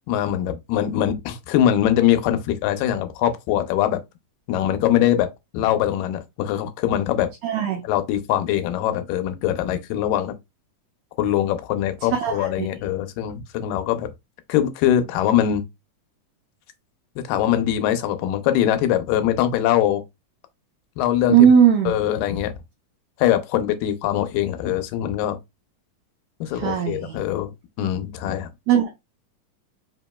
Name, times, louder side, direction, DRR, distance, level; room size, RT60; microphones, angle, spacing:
voice 1, 0.1-4.0 4.5-5.3 5.5-7.3 7.8-10.4 11.2-14.1 14.5-15.6 17.3-20.0 21.0-21.5 21.9-22.5 23.2-25.4 26.4-27.5 27.8-28.5, left 11 dB, 85° left, 2.3 m, -22 dB
voice 2, 7.4-7.8 12.1-12.7 21.3-21.9 26.5-27.2 28.7-28.9, right 8 dB, 85° right, 1.5 m, -18 dB
5.1 x 2.9 x 2.2 m
omnidirectional pair, 3.8 m